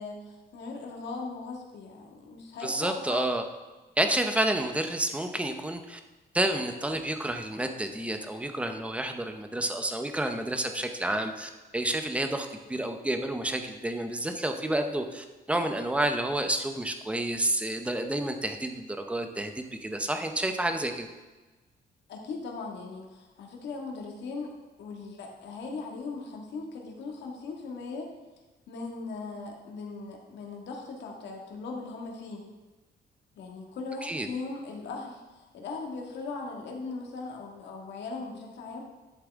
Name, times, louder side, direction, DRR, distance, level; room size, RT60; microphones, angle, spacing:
voice 1, 0.0-3.4 22.1-24.5 24.8-28.1 28.7-32.4 33.3-38.8, left 4 dB, 90° left, 0 dB, 1.8 m, -39 dB
voice 2, 2.6-3.4 4.0-6.0 6.3-21.1 34.0-34.3, right 1 dB, 5° right, 6 dB, 0.6 m, -30 dB
11.0 x 7.5 x 3.6 m, 1.2 s
cardioid pair, 170°, 17 cm